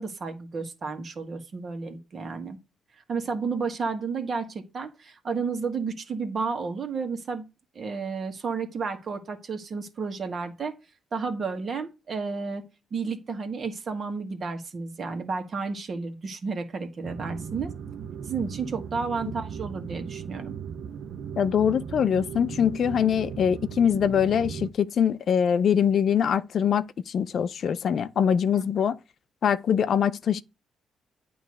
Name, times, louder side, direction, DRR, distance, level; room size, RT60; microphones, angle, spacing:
voice 1, 0.0-2.6 3.1-7.5 7.7-10.7 11.1-12.6 12.9-17.7 18.3-20.6 28.5-28.9, right 4 dB, 45° right, 1.7 m, -32 dB
sound 1, 17.0-24.7, right 7 dB, 65° right, 0.8 m, -37 dB
voice 2, 21.4-29.0 29.4-30.4, left 8 dB, 60° left, 0.5 m, -23 dB
9.1 x 3.1 x 6.5 m
cardioid pair, 90°, 0 cm